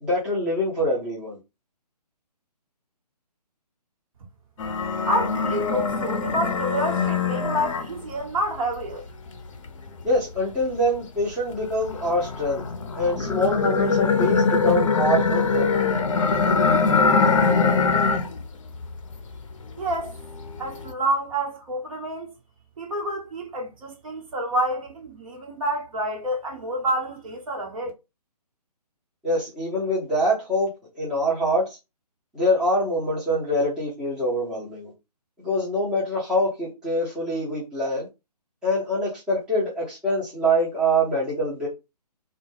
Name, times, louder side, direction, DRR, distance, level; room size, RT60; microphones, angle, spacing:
voice 1, 0.0-1.4 10.0-12.6 13.0-15.7 29.2-30.7 31.0-31.8 32.3-34.9 35.4-38.1 38.6-41.7, equal, 5° right, 0.5 m, -24 dB
sound 1, 4.6-8.2 8.7-11.0 11.5-18.4 18.7-19.5 19.9-20.9, left 4 dB, 50° left, 0.5 m, -23 dB
voice 2, 5.1-9.0 19.8-20.1 20.6-22.3 22.8-27.9, right 1 dB, 55° right, 1.0 m, -28 dB
2.1 x 2.1 x 3.1 m
figure-of-eight pair, 140°, 21 cm